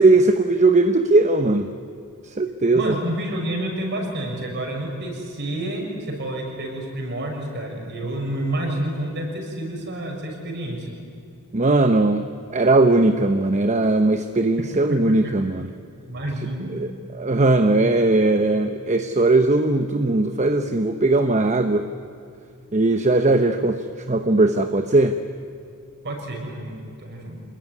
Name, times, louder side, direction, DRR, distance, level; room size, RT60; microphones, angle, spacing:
voice 1, 0.0-1.7 2.2-2.9 11.5-15.7 16.7-21.9 22.7-25.2, right 2 dB, 30° right, 8 dB, 0.9 m, -19 dB
voice 2, 2.7-10.9 14.6-15.3 16.1-16.7 26.0-27.4, right 1 dB, 50° right, 1 dB, 6.4 m, -29 dB
26.5 x 21.0 x 9.7 m, 2.4 s
head